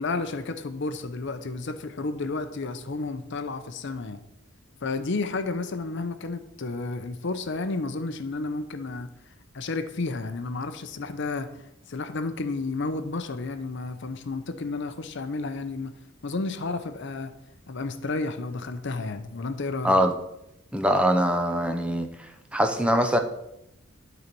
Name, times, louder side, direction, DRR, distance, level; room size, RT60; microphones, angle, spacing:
voice 1, 0.0-4.2 4.8-9.1 9.5-11.5 11.9-15.9 16.2-17.3 17.7-19.9, left 3 dB, 60° left, 9 dB, 0.6 m, -31 dB
voice 2, 20.7-22.1 22.5-23.2, equal, 5° right, 5 dB, 0.6 m, -22 dB
12.0 x 4.0 x 4.5 m, 0.84 s
head